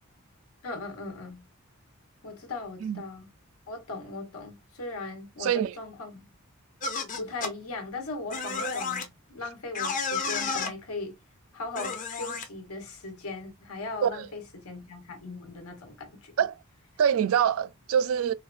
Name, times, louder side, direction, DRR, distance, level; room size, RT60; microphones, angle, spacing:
voice 1, 0.6-1.4 2.2-3.3 3.7-6.3 7.2-11.2 11.5-16.3, left 3 dB, 85° left, 1.2 m, -39 dB
voice 2, 5.4-5.7 14.0-14.3 16.4-16.6 17.0-18.3, right 8 dB, 70° right, 0.3 m, -25 dB
sound 1, 6.8-7.5 8.3-9.0 9.7-10.7 11.7-12.4, left 4 dB, 35° left, 0.7 m, -31 dB
4.4 x 2.4 x 2.4 m
head